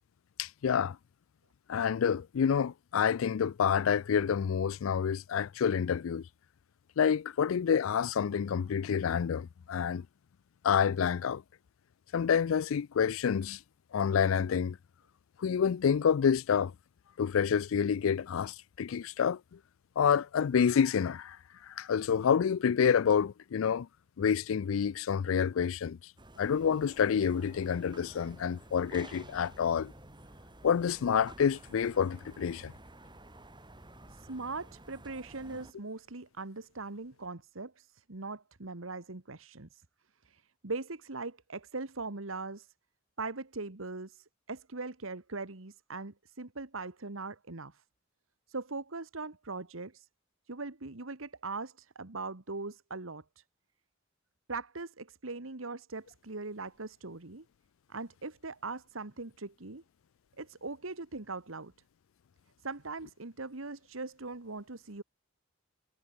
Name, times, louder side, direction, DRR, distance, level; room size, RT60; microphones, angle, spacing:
voice 1, 0.4-1.0 1.7-6.2 7.0-10.1 10.6-11.4 12.1-13.6 13.9-14.8 15.4-16.7 17.2-19.6 20.0-21.4 21.6-23.9 24.2-26.0 26.4-29.9 30.6-32.7, left 7 dB, 75° left, 0.4 m, -28 dB
sound 1, 26.2-35.7, right 1 dB, 25° right, 5.3 m, -52 dB
voice 2, 34.1-39.8 40.2-42.7 43.2-47.8 48.5-50.1 50.5-53.4 54.5-57.4 57.9-59.8 60.4-61.7 62.6-65.0, right 3 dB, 80° right, 1.7 m, -41 dB
head